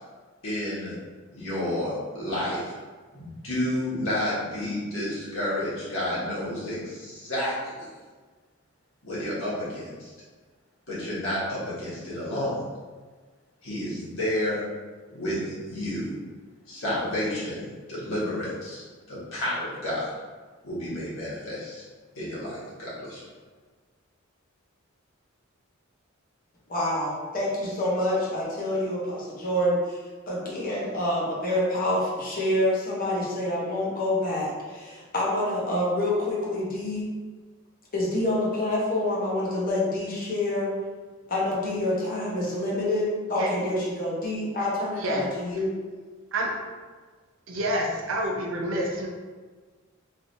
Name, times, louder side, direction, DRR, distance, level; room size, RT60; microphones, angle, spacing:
voice 1, 0.4-1.0 1.3-2.7 3.1-7.9 9.0-10.1 10.9-12.6 13.6-14.6 15.1-16.1 16.7-20.1 20.6-21.8 22.1-23.2, left 1 dB, 70° left, -9 dB, 1.4 m, -30 dB
voice 2, 26.7-30.0 30.3-37.0 37.9-40.7 41.3-45.7, left 1 dB, 45° left, -5 dB, 0.9 m, -27 dB
voice 3, 47.5-49.1, right 1 dB, 65° right, 0 dB, 0.5 m, -28 dB
3.2 x 2.6 x 2.6 m, 1.4 s
head